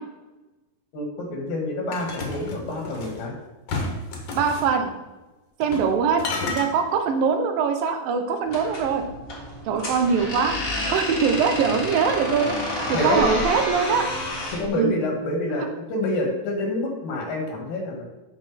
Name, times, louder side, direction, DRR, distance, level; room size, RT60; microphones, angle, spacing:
voice 1, 0.9-3.4 12.9-13.3 14.5-18.1, left 1 dB, 85° left, 1 dB, 3.6 m, -27 dB
sound 1, 1.9-3.2 3.7-4.7 5.6-5.9 6.2-6.7, left 3 dB, 55° left, 2.1 m, -31 dB
voice 2, 4.4-4.9 5.6-6.2 6.5-9.0 9.7-10.5 10.9-14.1 14.8-15.0, right 6 dB, 80° right, 5 dB, 2.6 m, -22 dB
sound 2, 8.5-14.7, left 1 dB, 35° left, 1.4 m, -30 dB
12.0 x 4.9 x 4.2 m, 1.1 s
omnidirectional pair, 4.0 m